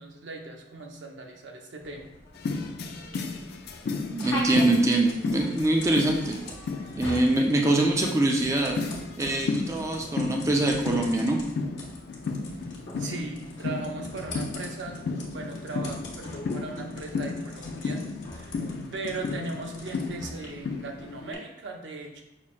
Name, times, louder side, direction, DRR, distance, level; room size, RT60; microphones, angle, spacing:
voice 1, 0.0-2.1 13.0-18.0 18.3-18.6 18.9-22.2, right 3 dB, 75° right, 2 dB, 0.6 m, -38 dB
sound 1, 1.8-21.3, left 1 dB, 75° left, 0.8 m, -42 dB
sound 2, 2.3-21.3, left 4 dB, 55° left, 0.3 m, -34 dB
voice 2, 4.1-6.4 7.0-8.8 9.2-11.4, right 2 dB, 15° right, 1 dB, 0.3 m, -24 dB
5.7 x 2.0 x 2.4 m, 0.92 s
head